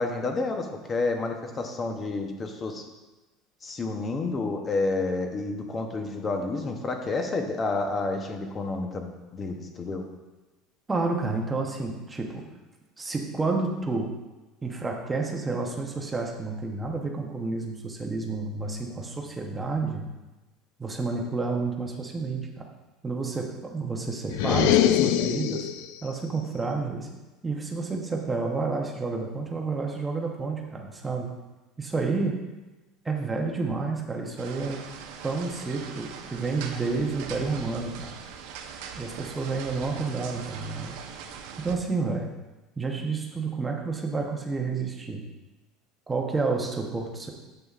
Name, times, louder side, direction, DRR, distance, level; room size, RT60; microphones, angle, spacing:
voice 1, 0.0-2.8 3.6-10.1, left 3 dB, 20° left, 4 dB, 0.8 m, -30 dB
voice 2, 10.9-12.4 13.0-14.1 14.6-20.0 20.8-22.6 23.0-25.7 26.0-27.1 27.4-31.3 31.8-32.4 33.0-34.8 35.2-38.1 39.0-41.0 41.6-42.3 42.8-45.2 46.1-47.3, right 3 dB, 10° right, 1 dB, 0.8 m, -30 dB
sound 1, 24.3-25.9, left 11 dB, 75° left, 0.4 m, -22 dB
sound 2, 34.4-41.8, right 7 dB, 80° right, 0.8 m, -41 dB
8.4 x 7.7 x 2.4 m, 1.1 s
cardioid pair, 170°, 0 cm